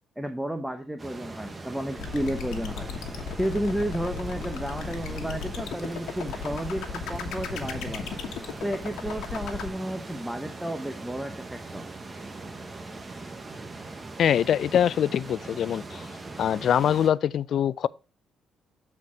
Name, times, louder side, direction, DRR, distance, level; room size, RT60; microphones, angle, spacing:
voice 1, 0.2-2.9 3.4-8.2 8.6-11.9, right 1 dB, 5° right, 0.8 m, -32 dB
sound 1, 1.0-17.1, right 3 dB, 25° right, 1.1 m, -40 dB
sound 2, 2.0-9.7, left 7 dB, 80° left, 1.2 m, -36 dB
voice 2, 14.2-16.1 16.4-17.9, left 9 dB, 65° left, 0.3 m, -23 dB
8.1 x 4.3 x 4.7 m
cardioid pair, 90°, 0 cm